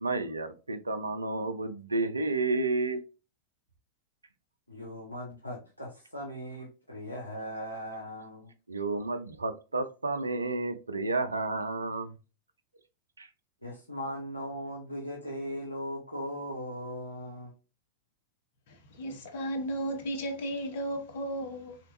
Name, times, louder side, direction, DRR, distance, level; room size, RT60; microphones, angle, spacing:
voice 1, 0.0-3.0 8.7-12.1 13.2-13.3, right 3 dB, 80° right, 0.5 m, -31 dB
voice 2, 4.7-8.5 13.6-17.5, equal, 90° left, 0.7 m, -38 dB
voice 3, 18.7-21.8, right 1 dB, 55° left, 0.8 m, -34 dB
3.4 x 2.9 x 2.5 m
figure-of-eight pair, 90°, 0 cm